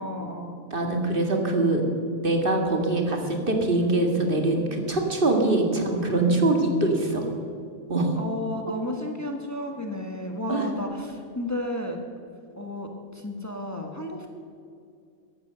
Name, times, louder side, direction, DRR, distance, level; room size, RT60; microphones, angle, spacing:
voice 1, 0.0-0.6 6.2-6.5 8.2-12.0 12.6-14.3, left 1 dB, 15° left, 3 dB, 1.3 m, -33 dB
voice 2, 0.7-1.8 2.2-7.3 7.9-8.2 10.5-10.6, right 2 dB, 40° right, 3 dB, 2.1 m, -23 dB
15.0 x 11.5 x 6.8 m, 2.4 s
omnidirectional pair, 1.3 m